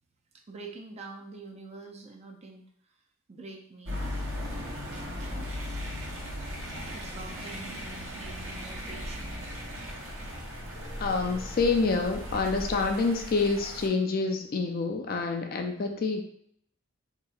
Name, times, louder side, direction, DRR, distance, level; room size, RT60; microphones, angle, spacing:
voice 1, 0.3-2.6 2.9-3.0 3.3-4.0 4.8-5.5 6.9-9.5 15.7-15.9, right 3 dB, 30° right, 2 dB, 0.4 m, -46 dB
sound 1, 3.8-13.9, equal, 65° right, 0.8 m, -38 dB
sound 2, 4.3-12.9, left 1 dB, 85° left, 0.6 m, -43 dB
voice 2, 10.7-16.2, left 4 dB, 45° left, 4 dB, 0.4 m, -27 dB
4.1 x 2.8 x 2.3 m, 0.72 s
head